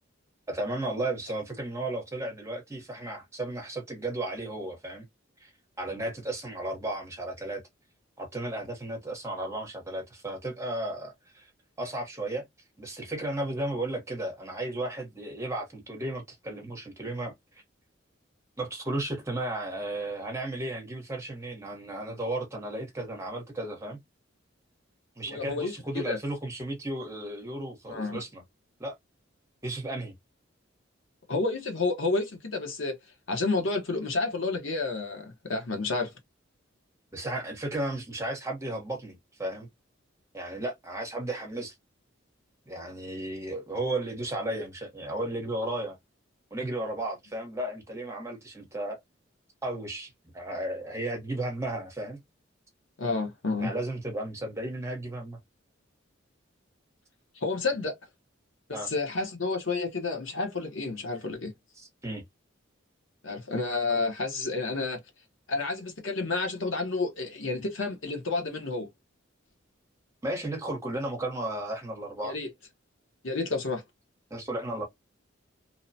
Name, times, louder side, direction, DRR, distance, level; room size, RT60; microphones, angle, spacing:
voice 1, 0.5-5.1 5.4-5.5 5.8-7.6 8.2-11.5 11.8-12.4 12.8-17.6 18.6-24.0 25.2-28.4 28.8-29.0 29.6-30.1 37.1-39.7 40.3-41.7 42.7-46.0 46.5-49.0 49.6-52.2 53.6-55.4 58.7-58.9 61.8-62.2 70.2-72.3 74.3-74.8, right 1 dB, 15° right, 0.9 m, -34 dB
voice 2, 25.3-26.2 27.9-28.2 31.3-32.9 33.3-36.1 53.0-53.7 57.4-58.0 58.7-61.5 63.2-65.0 65.5-68.9 72.2-72.5 73.2-73.8, left 3 dB, 80° left, 0.9 m, -30 dB
2.8 x 2.1 x 2.6 m
head